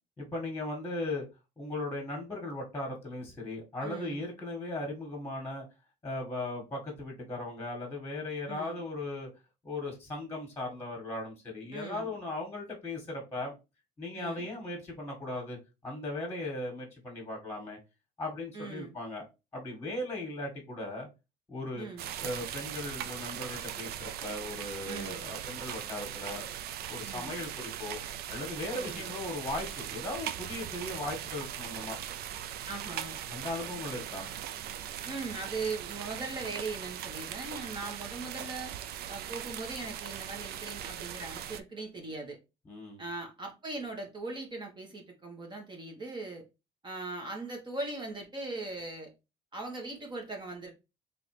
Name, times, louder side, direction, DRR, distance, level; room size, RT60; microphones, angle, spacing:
voice 1, 0.2-1.3 1.6-5.7 6.0-9.3 9.6-13.5 14.0-15.6 15.8-17.8 18.2-19.2 19.5-21.1 21.5-21.9 22.2-26.5 26.9-28.0 28.3-32.0 33.3-34.3 42.7-43.0, left 2 dB, 15° left, 1.7 m, -37 dB
voice 2, 3.8-4.2 8.5-8.8 11.7-12.1 14.1-14.5 18.5-18.9 21.7-22.1 24.8-25.2 27.0-27.3 28.7-29.0 32.6-33.2 35.0-38.7 39.1-42.4 43.0-46.4 46.8-49.1 49.5-50.7, right 3 dB, 25° right, 1.4 m, -40 dB
sound 1, 22.0-41.6, right 10 dB, 70° right, 0.5 m, -40 dB
3.7 x 3.3 x 3.3 m
cardioid pair, 110°, 17 cm